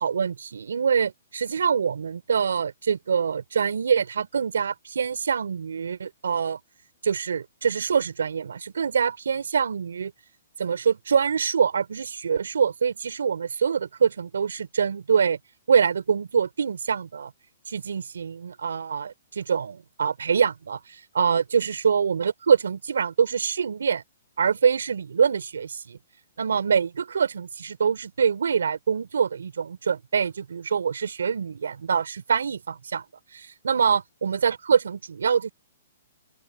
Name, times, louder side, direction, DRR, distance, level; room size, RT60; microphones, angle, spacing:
voice 1, 0.0-6.6 7.0-10.1 10.6-15.4 15.7-17.3 17.7-24.0 24.4-26.0 26.4-33.0 33.3-35.5, right 6 dB, 75° right, 4.1 m, -25 dB
open air
hypercardioid pair, 130°, 0 cm